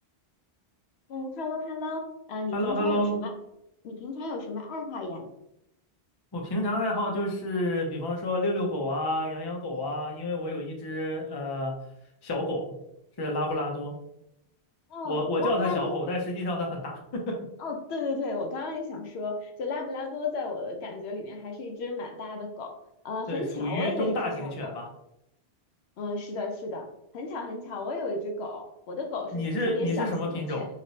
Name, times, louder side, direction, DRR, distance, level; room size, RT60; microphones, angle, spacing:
voice 1, 1.1-3.3 3.8-5.3 14.9-16.0 17.6-22.8 23.0-24.7 26.0-26.8 27.1-30.7, left 3 dB, 80° left, 3 dB, 0.9 m, -34 dB
voice 2, 2.5-3.1 6.3-11.7 12.2-12.7 13.2-13.9 15.0-17.3 23.3-24.9 29.3-30.7, left 1 dB, 30° left, 1 dB, 0.5 m, -29 dB
3.2 x 2.8 x 2.6 m, 0.80 s
omnidirectional pair, 1.1 m